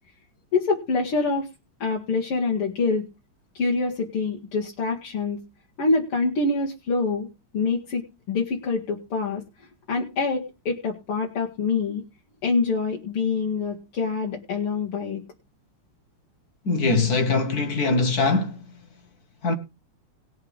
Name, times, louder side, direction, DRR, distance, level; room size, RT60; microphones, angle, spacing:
voice 1, 0.5-1.5 1.8-3.1 3.5-5.4 5.8-7.3 7.5-9.4 9.9-12.0 12.4-15.2, left 4 dB, 85° left, 2.8 m, -25 dB
voice 2, 16.6-18.6 19.4-19.6, left 3 dB, 50° left, 1.7 m, -22 dB
19.5 x 8.1 x 3.5 m
omnidirectional pair, 2.4 m